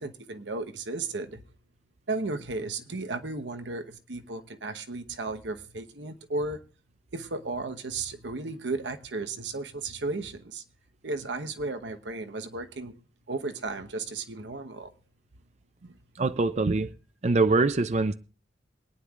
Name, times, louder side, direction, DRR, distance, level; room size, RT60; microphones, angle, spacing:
voice 1, 0.0-1.4 2.1-6.6 7.1-10.6 11.0-13.0 13.3-14.9 15.8-16.0 16.7-16.8, right 3 dB, 85° right, 1.1 m, -34 dB
voice 2, 16.2-16.9 17.2-18.1, right 3 dB, 40° right, 0.5 m, -23 dB
24.0 x 9.7 x 2.4 m
head